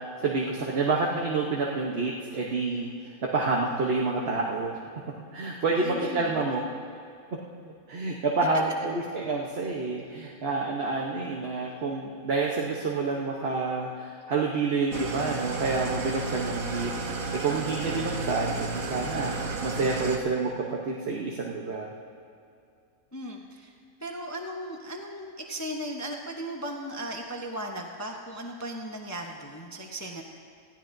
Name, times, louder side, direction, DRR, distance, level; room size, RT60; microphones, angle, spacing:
voice 1, 0.2-4.9 5.3-6.6 7.7-16.9 17.2-21.9, right 3 dB, 50° right, -1 dB, 1.1 m, -28 dB
voice 2, 5.8-6.7 23.1-23.7 24.0-30.2, right 1 dB, 15° left, 1 dB, 0.7 m, -37 dB
Engine starting / Idling, 14.9-20.2, right 3 dB, 70° right, 1.5 m, -32 dB
20.0 x 15.0 x 2.6 m, 2.4 s
omnidirectional pair, 1.5 m